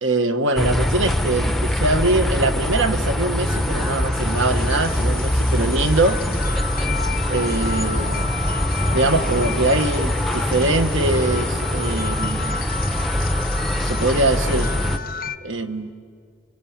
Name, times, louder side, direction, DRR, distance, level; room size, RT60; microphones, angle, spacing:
voice 1, 0.0-6.2 7.3-8.3 8.9-12.6 13.8-14.7 15.4-15.9, right 2 dB, 65° right, 8 dB, 1.3 m, -22 dB
sound 1, 0.6-15.0, left 1 dB, ahead, 0.7 m, -23 dB
sound 2, 3.5-15.4, left 5 dB, 45° left, 0.6 m, -33 dB
28.0 x 24.0 x 8.7 m, 2.2 s
head